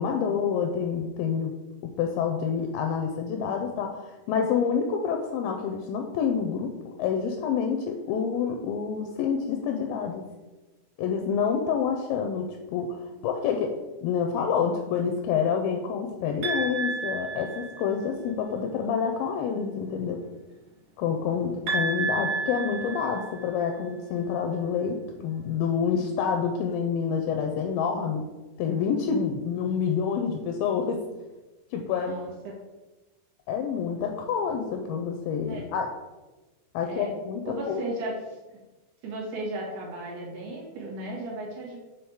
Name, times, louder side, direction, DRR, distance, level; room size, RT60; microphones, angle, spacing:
voice 1, 0.0-1.5 2.0-10.2 11.0-20.2 21.0-28.2 28.6-31.0 31.7-32.3 33.5-35.9 36.7-37.4 37.7-37.8, left 6 dB, 85° left, 3 dB, 2.1 m, -28 dB
sound 1, 16.4-18.1 21.7-23.7, right 3 dB, 60° right, 1.9 m, -31 dB
voice 2, 32.0-32.5 35.5-35.6 36.9-37.1 37.5-38.4 39.0-41.8, right 1 dB, 75° right, -4 dB, 3.4 m, -35 dB
7.9 x 3.3 x 4.6 m, 1.1 s
omnidirectional pair, 4.6 m